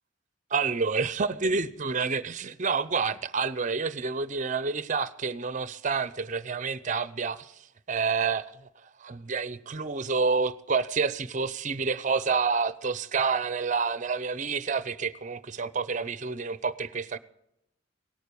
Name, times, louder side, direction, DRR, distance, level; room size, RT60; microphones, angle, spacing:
voice 1, 0.5-7.5 7.9-8.5 9.0-17.2, right 5 dB, 35° right, 0.6 m, -28 dB
18.0 x 9.3 x 6.9 m
head